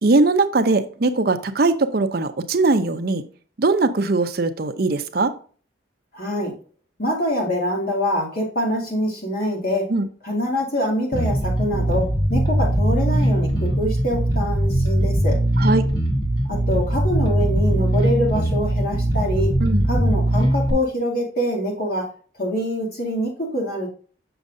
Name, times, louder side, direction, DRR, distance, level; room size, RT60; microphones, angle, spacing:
voice 1, 0.0-3.2 3.6-5.3 9.9-10.1 15.6-15.9 19.6-19.8, right 3 dB, 50° right, 9 dB, 0.6 m, -20 dB
voice 2, 6.1-6.5 7.0-9.9 10.2-15.4 16.5-19.6 19.9-22.1 22.4-23.9, equal, 50° left, -1 dB, 2.5 m, -25 dB
Bass guitar, 11.1-20.7, right 1 dB, 20° left, 1.3 m, -20 dB
6.9 x 6.2 x 2.6 m, 0.41 s
head